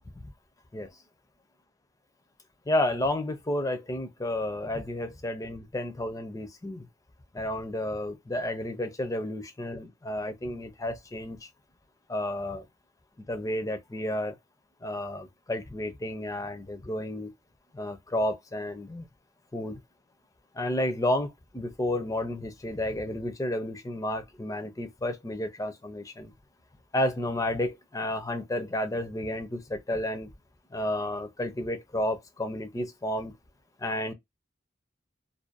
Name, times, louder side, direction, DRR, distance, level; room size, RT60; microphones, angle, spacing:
voice 1, 2.7-6.9 7.3-11.5 12.1-12.7 13.3-14.3 14.8-17.3 17.7-19.0 19.5-19.8 20.5-26.3 26.9-30.3 30.7-33.3 33.8-34.1, left 1 dB, 15° left, 0.5 m, -31 dB
2.6 x 2.2 x 2.3 m
head